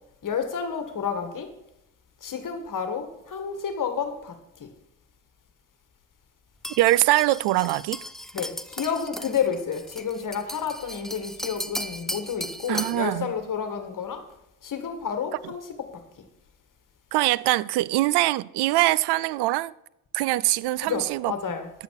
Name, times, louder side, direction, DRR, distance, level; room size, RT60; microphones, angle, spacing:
voice 1, 0.2-1.5 2.2-4.3 4.6-4.7 8.3-14.2 14.6-15.6 20.8-21.7, left 7 dB, 45° left, 1.8 m, -30 dB
sound 1, 6.6-13.1, equal, ahead, 0.6 m, -36 dB
voice 2, 6.8-8.0 12.7-13.3 17.1-19.7 20.1-21.3, right 17 dB, 65° right, 0.6 m, -23 dB
10.5 x 8.2 x 4.8 m
hypercardioid pair, 60°, 43 cm